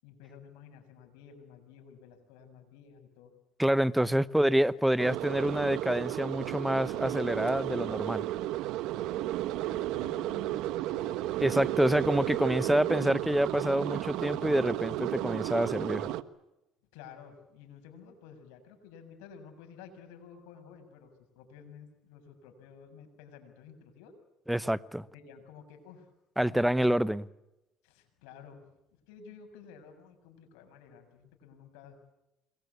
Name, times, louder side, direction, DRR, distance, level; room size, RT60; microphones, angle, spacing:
voice 1, 0.0-3.3 3.9-4.2 4.6-4.9 9.6-12.0 16.9-24.1 25.1-26.1 26.4-26.9 27.8-28.6 29.1-32.1, left 7 dB, 85° left, 6.8 m, -52 dB
voice 2, 3.6-8.2 11.4-16.1 24.5-25.0 26.4-27.3, right 1 dB, 5° right, 0.9 m, -27 dB
sound 1, 5.0-16.2, right 14 dB, 70° right, 1.2 m, -33 dB
28.0 x 22.0 x 8.3 m
supercardioid pair, 95°, 0 cm